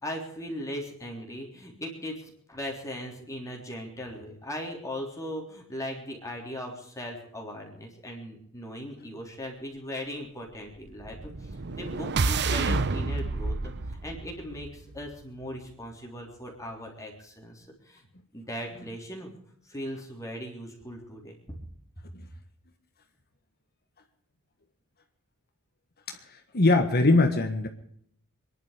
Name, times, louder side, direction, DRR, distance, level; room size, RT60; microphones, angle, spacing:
voice 1, 0.0-18.1 18.3-19.4 19.7-21.4, equal, 15° left, 0 dB, 3.6 m, -39 dB
sound 1, 11.0-15.2, right 3 dB, 50° right, 0.9 m, -29 dB
voice 2, 26.1-27.7, left 2 dB, 45° left, 6 dB, 1.6 m, -22 dB
25.5 x 11.0 x 5.1 m, 0.67 s
head